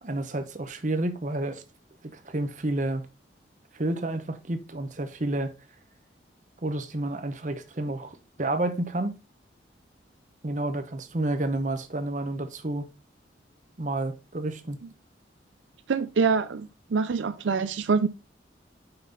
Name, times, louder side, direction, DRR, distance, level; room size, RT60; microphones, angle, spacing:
voice 1, 0.0-1.6 2.1-3.1 3.7-5.5 6.6-9.1 10.4-12.9 13.8-14.8, right 2 dB, 40° right, 0.8 m, -30 dB
voice 2, 15.9-18.1, right 5 dB, 80° right, 0.5 m, -25 dB
5.8 x 5.4 x 3.9 m
head